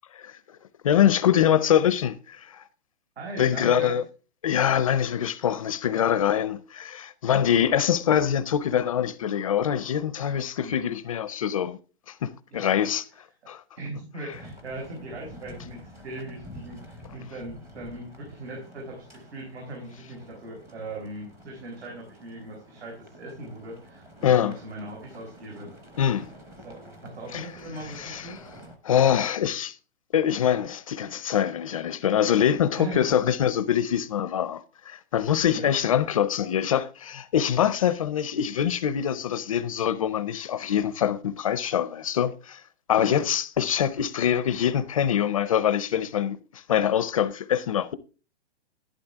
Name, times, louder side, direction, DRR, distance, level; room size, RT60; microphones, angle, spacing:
voice 1, 0.8-2.6 3.4-4.0 4.4-11.8 12.1-13.0 13.5-13.6 24.2-24.5 26.0-26.3 27.3-27.5 28.0-28.4 28.8-29.8 30.1-42.6 42.9-47.9, left 9 dB, 30° left, 0.5 m, -24 dB
voice 2, 3.2-4.0 10.6-10.8 12.5-12.8 13.8-25.7 26.6-28.4 32.8-33.1 35.5-35.7 43.1-43.2, right 1 dB, 75° right, 5.7 m, -39 dB
sound 1, 14.3-28.8, equal, 10° right, 0.7 m, -48 dB
12.0 x 11.0 x 3.5 m
hypercardioid pair, 165°, 33 cm